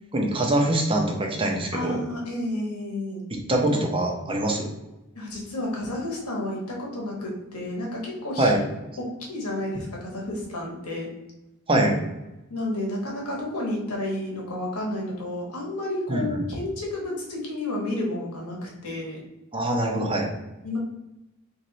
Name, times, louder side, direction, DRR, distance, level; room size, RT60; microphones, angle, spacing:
voice 1, 0.1-2.0 3.3-4.7 8.4-8.6 11.7-11.9 16.1-16.4 19.5-20.3, right 1 dB, 25° right, 1 dB, 0.7 m, -23 dB
voice 2, 1.7-3.2 5.1-8.5 9.0-11.1 12.5-19.2 20.6-20.8, left 1 dB, 85° left, -2 dB, 1.4 m, -31 dB
3.2 x 3.2 x 4.0 m, 0.97 s
head